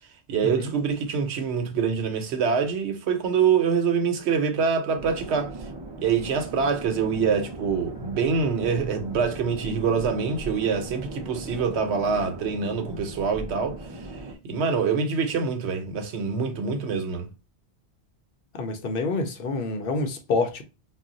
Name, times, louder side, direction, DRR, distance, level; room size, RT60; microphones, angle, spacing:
voice 1, 0.3-5.5 6.0-14.1 14.4-17.3, right 6 dB, 85° right, 1.0 m, -25 dB
sound 1, 4.9-14.4, right 2 dB, 35° right, 0.5 m, -38 dB
voice 2, 18.5-20.6, left 3 dB, 65° left, 0.7 m, -27 dB
2.3 x 2.0 x 3.8 m
omnidirectional pair, 1.1 m